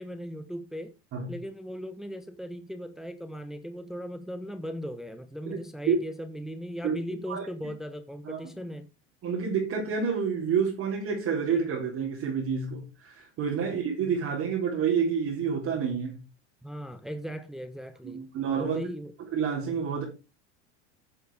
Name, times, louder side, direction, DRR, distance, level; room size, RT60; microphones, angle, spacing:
voice 1, 0.0-0.9 1.3-8.9 16.6-18.2 18.6-19.1, equal, ahead, 0.9 m, -38 dB
voice 2, 9.2-16.2 18.0-18.8 19.3-20.0, right 6 dB, 40° right, 4.2 m, -28 dB
9.6 x 7.0 x 4.9 m
supercardioid pair, 110°, 34 cm